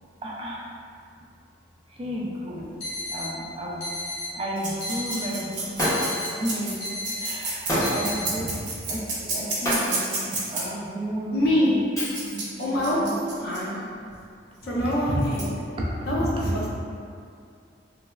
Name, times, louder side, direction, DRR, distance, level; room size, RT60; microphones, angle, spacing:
voice 1, 0.2-0.6 2.0-2.7 3.1-3.9 4.3-6.8 7.2-8.6 8.9-10.0 10.3-11.8 12.3-13.2 14.6-15.2 15.8-16.6, equal, 30° right, -4 dB, 0.3 m, -32 dB
sound 1, 2.8-3.3 3.8-4.3 4.8-5.3 5.8-6.3 6.8-7.3 7.8-8.2, left 1 dB, 85° left, 1.1 m, -33 dB
sound 2, 4.6-10.6 12.1-13.6 14.9-15.0 15.2-15.4, right 3 dB, 80° right, 0.6 m, -31 dB
Shatter, 5.8-6.4 7.7-8.3 9.6-10.2 12.0-12.6, equal, 20° left, 0.6 m, -27 dB
voice 2, 11.3-11.7 12.6-13.0 13.4-13.8 14.6-15.5 16.1-16.7, equal, 60° left, -6 dB, 0.6 m, -25 dB
3.2 x 2.0 x 2.2 m, 2.3 s
head